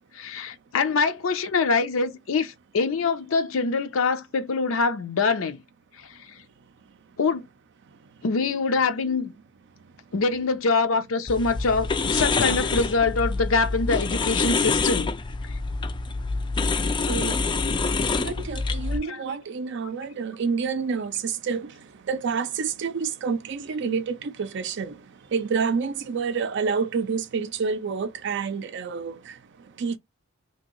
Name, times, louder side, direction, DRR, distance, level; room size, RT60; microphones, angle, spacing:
voice 1, 0.1-5.6 6.0-6.1 7.2-7.4 8.2-9.3 10.1-15.1 19.1-19.2, left 4 dB, 80° left, 0.5 m, -24 dB
voice 2, 7.9-8.2 9.8-10.1 17.1-17.4 18.2-30.0, right 5 dB, 60° right, 0.4 m, -29 dB
sound 1, 11.3-19.0, left 4 dB, 25° left, 0.3 m, -26 dB
2.9 x 2.6 x 2.9 m
head